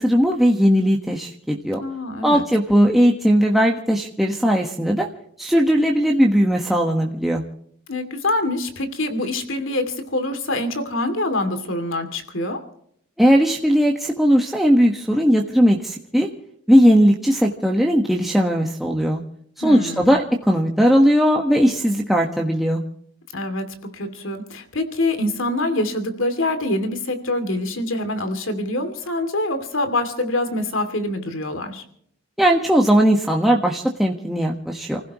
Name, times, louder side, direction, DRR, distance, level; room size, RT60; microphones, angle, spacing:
voice 1, 0.0-1.8 2.2-5.1 5.4-7.4 13.2-16.3 16.7-19.2 19.6-22.8 32.4-35.0, equal, ahead, 0 dB, 1.3 m, -18 dB
voice 2, 1.8-2.4 7.9-12.6 19.6-20.1 23.3-31.8, left 1 dB, 75° left, 9 dB, 2.6 m, -25 dB
30.0 x 15.5 x 3.1 m, 0.65 s
head